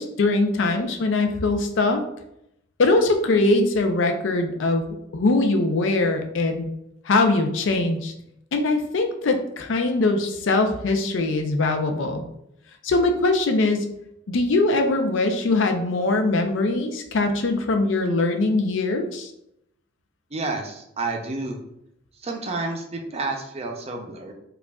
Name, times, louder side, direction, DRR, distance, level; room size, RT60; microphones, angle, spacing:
voice 1, 0.0-2.0 2.8-4.8 5.1-6.7 7.1-8.1 8.5-12.2 12.8-13.9 14.3-19.3, left 2 dB, 80° left, 5 dB, 0.5 m, -22 dB
voice 2, 20.3-21.6 22.2-24.3, right 3 dB, 35° right, 3 dB, 0.5 m, -30 dB
4.8 x 2.4 x 2.3 m, 0.79 s
head